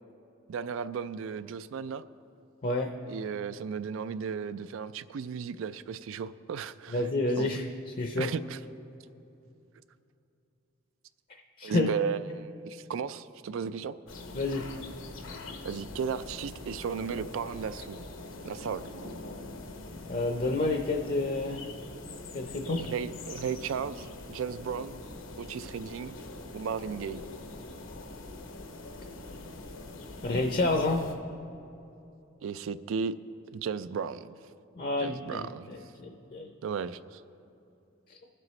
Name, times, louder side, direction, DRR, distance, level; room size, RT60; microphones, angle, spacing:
voice 1, 0.5-2.0 3.1-7.1 7.4-7.5 8.2-8.6 11.6-14.0 15.6-18.0 18.4-18.8 22.7-25.0 25.4-26.1 26.5-27.2 32.4-33.2 33.5-34.3 35.0-35.7 36.6-37.2, right 6 dB, 75° right, 14 dB, 0.3 m, -35 dB
voice 2, 6.9-8.3 11.6-11.9 14.3-14.6 20.1-21.6 22.3-22.8 30.2-31.0 34.8-36.5 38.1-38.2, left 2 dB, 40° left, 3 dB, 0.6 m, -29 dB
sound 1, 14.1-31.1, left 2 dB, 75° left, 0.9 m, -43 dB
21.0 x 7.6 x 3.2 m, 2.7 s
head